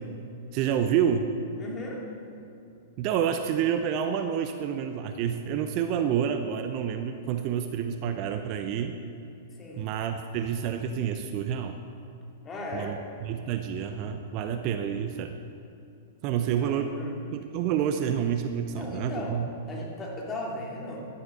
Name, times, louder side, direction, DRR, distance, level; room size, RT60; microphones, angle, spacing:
voice 1, 0.5-1.3 3.0-9.0 9.8-11.8 12.7-12.9 13.2-15.3 16.2-16.9 17.3-19.5, right 8 dB, 40° right, 7 dB, 0.7 m, -28 dB
voice 2, 1.6-2.0 9.5-9.9 12.4-13.0 16.6-17.1 18.7-19.4 19.7-21.1, left 1 dB, 20° left, -2 dB, 3.1 m, -37 dB
11.5 x 11.0 x 6.9 m, 2.6 s
figure-of-eight pair, 100°, 0 cm